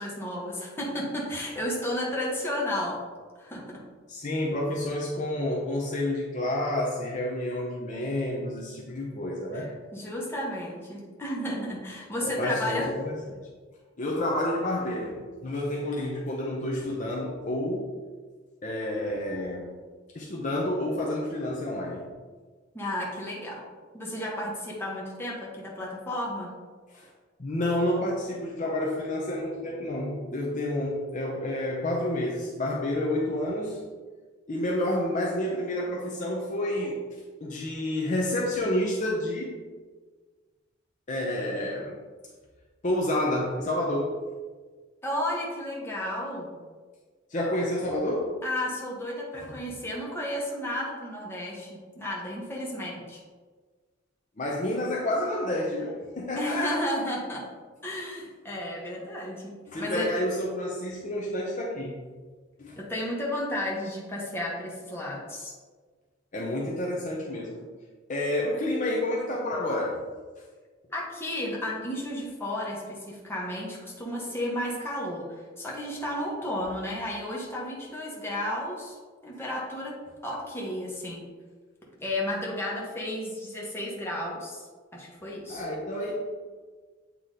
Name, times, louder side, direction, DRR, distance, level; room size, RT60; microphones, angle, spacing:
voice 1, 0.0-3.0 3.4-3.8 9.5-12.9 22.7-23.6 23.9-26.5 45.0-46.5 48.4-53.2 56.4-57.5 57.8-60.1 62.8-65.5 70.9-79.0 79.2-80.0 80.2-81.2 82.0-84.7 84.9-85.7, left 1 dB, 15° left, -4 dB, 1.3 m, -33 dB
voice 2, 4.1-9.7 12.2-13.5 14.0-17.9 18.6-19.7 20.1-22.1 26.9-27.1 27.4-33.8 34.5-37.0 37.4-39.6 41.1-42.0 42.8-44.2 47.3-48.4 49.3-49.6 54.4-56.8 59.7-62.1 62.6-62.8 66.3-67.7 68.1-70.0 85.5-86.1, left 1 dB, 40° left, -2 dB, 0.7 m, -29 dB
8.2 x 3.0 x 3.8 m, 1.4 s
head